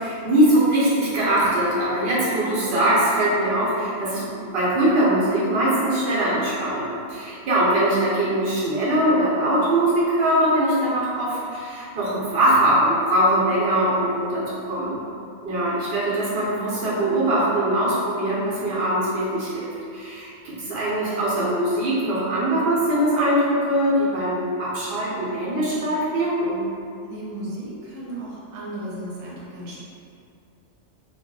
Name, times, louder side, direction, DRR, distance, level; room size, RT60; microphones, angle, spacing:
voice 1, 0.0-4.2 4.5-15.0 15.4-26.6, right 1 dB, 60° right, -8 dB, 0.9 m, -22 dB
voice 2, 27.0-29.8, right 1 dB, 90° right, -6 dB, 1.0 m, -35 dB
2.2 x 2.0 x 3.6 m, 2.5 s
omnidirectional pair, 1.3 m